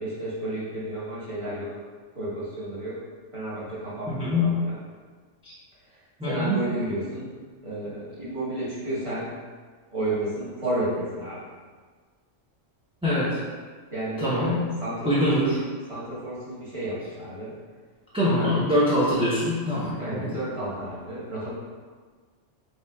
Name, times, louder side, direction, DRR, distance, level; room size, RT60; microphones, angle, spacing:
voice 1, 0.0-1.7 2.1-3.0 3.3-4.7 5.9-6.0 6.2-7.3 7.6-9.3 9.9-11.4 13.9-15.5 15.9-17.5 18.2-18.5 20.0-21.5, right 1 dB, 25° right, -10 dB, 1.4 m, -32 dB
voice 2, 4.1-4.5 5.4-5.5 6.2-6.6 13.0-13.4 14.2-14.6 15.0-15.6 18.1-20.3, left 1 dB, 5° right, -10 dB, 0.5 m, -24 dB
5.4 x 3.3 x 2.3 m, 1.5 s
omnidirectional pair, 1.3 m